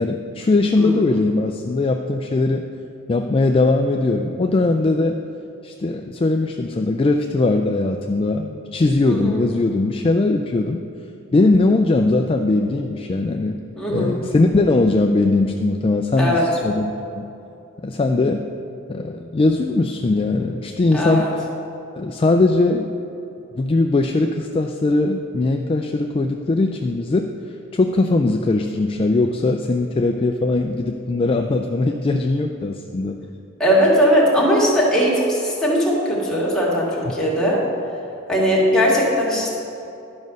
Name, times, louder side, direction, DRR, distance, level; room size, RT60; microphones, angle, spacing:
voice 1, 0.0-2.7 3.1-5.2 5.6-10.8 11.3-13.6 13.9-17.3 17.8-18.4 18.9-21.3 21.9-22.9 23.6-27.3 27.7-33.2, left 2 dB, 25° left, 4 dB, 0.3 m, -20 dB
voice 2, 0.8-1.2 9.0-9.4 13.8-14.2 16.2-16.5 20.9-21.3 33.6-37.6 38.3-39.6, equal, 5° left, -6 dB, 1.9 m, -19 dB
11.5 x 5.3 x 6.3 m, 2.7 s
head